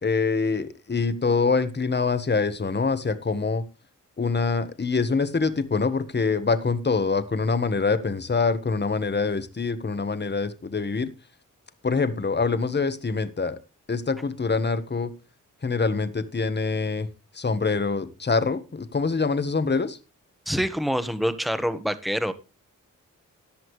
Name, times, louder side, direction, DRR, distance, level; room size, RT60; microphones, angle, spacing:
voice 1, 0.0-3.6 4.2-11.1 11.8-13.6 13.9-15.1 15.6-17.1 17.3-20.0, left 4 dB, 35° left, 12 dB, 1.4 m, -25 dB
voice 2, 20.5-22.3, equal, ahead, 11 dB, 1.5 m, -26 dB
14.5 x 10.5 x 3.2 m, 0.31 s
cardioid pair, 75°, 32 cm